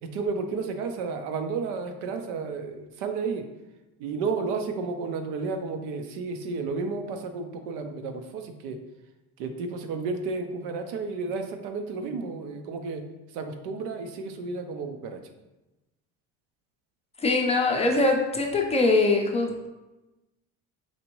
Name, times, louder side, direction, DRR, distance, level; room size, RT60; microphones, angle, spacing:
voice 1, 0.0-3.4 4.0-8.8 9.4-13.0 13.3-15.2, right 4 dB, 90° right, 6 dB, 0.6 m, -32 dB
voice 2, 17.2-19.7, left 3 dB, 20° left, 1 dB, 0.4 m, -23 dB
4.2 x 2.6 x 2.9 m, 1.0 s
cardioid pair, 125°, 34 cm